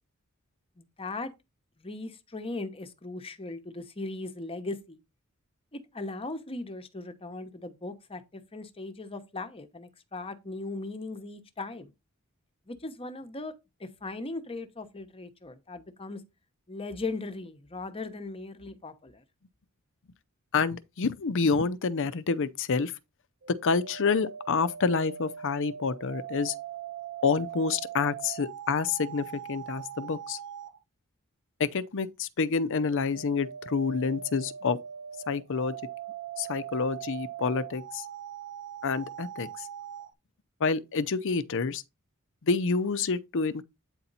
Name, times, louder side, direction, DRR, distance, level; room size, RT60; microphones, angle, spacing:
voice 1, 0.8-1.3 1.8-5.0 5.7-11.9 12.7-13.5 13.8-16.2 16.7-19.2, left 2 dB, 25° left, 0.9 m, -38 dB
voice 2, 20.5-22.9 23.5-26.5 27.2-30.4 31.6-34.8 35.3-35.7 36.4-38.0 38.8-39.5 40.6-41.8 42.4-43.6, left 5 dB, 60° left, 0.6 m, -28 dB
sound 1, 23.4-30.8 32.8-40.1, right 9 dB, 55° right, 0.6 m, -41 dB
8.8 x 4.3 x 4.0 m
head